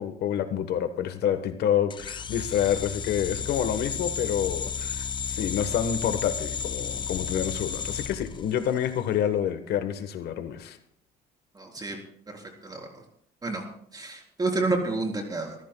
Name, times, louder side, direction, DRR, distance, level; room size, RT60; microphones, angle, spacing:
voice 1, 0.0-10.8, left 9 dB, 75° left, 9 dB, 1.2 m, -28 dB
sound 1, 1.9-9.0, left 6 dB, 30° left, 0.5 m, -33 dB
voice 2, 11.6-12.0 12.3-12.9 13.4-13.7 13.9-15.6, right 3 dB, 25° right, 1 dB, 3.8 m, -29 dB
27.5 x 15.0 x 2.3 m, 0.65 s
cardioid pair, 110°, 17 cm